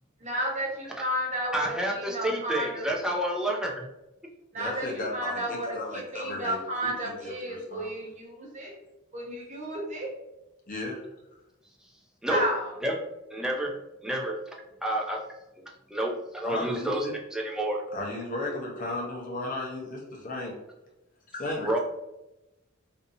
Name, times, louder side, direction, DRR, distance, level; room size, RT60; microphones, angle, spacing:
voice 1, 0.2-2.8 4.5-5.7 5.9-8.7 9.1-10.1 12.3-12.7, equal, 35° right, -3 dB, 0.8 m, -32 dB
voice 2, 1.5-3.9 12.2-12.4 12.8-12.9 13.3-13.7 14.0-14.4 14.8-15.2 15.9-17.1 17.3-17.8 21.6-21.8, right 1 dB, 5° right, -1 dB, 0.3 m, -29 dB
voice 3, 4.6-6.9 7.2-7.9 10.7-11.0 16.4-17.1 17.9-20.6 21.3-21.8, left 2 dB, 40° left, -2 dB, 0.7 m, -35 dB
2.6 x 2.5 x 2.6 m, 0.94 s
head